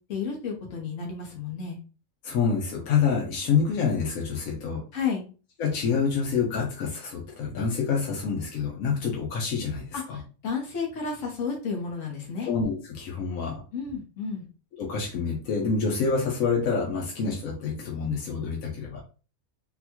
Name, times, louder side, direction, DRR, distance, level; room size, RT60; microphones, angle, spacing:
voice 1, 0.1-1.8 4.9-5.2 9.9-12.5 13.7-14.5, left 5 dB, 65° left, 0 dB, 1.4 m, -32 dB
voice 2, 2.2-4.8 5.6-10.2 12.5-13.6 14.8-19.0, left 5 dB, 90° left, 0 dB, 1.2 m, -27 dB
3.9 x 2.2 x 2.9 m, 0.34 s
omnidirectional pair, 1.4 m